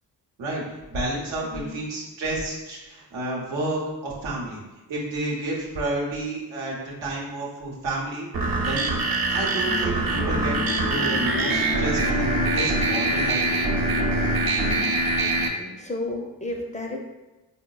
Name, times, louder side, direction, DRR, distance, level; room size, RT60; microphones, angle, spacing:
voice 1, 0.4-4.6 4.9-9.0 9.3-10.6 10.9-13.5, right 2 dB, 85° right, -3 dB, 0.8 m, -30 dB
sound 1, 8.3-15.5, right 2 dB, 50° right, 0.6 m, -24 dB
sound 2, 9.7-15.0, left 5 dB, 75° left, 0.5 m, -32 dB
voice 2, 15.2-17.0, left 2 dB, 20° left, 1 dB, 0.4 m, -33 dB
3.9 x 2.1 x 2.2 m, 1.0 s
supercardioid pair, 45°, 44 cm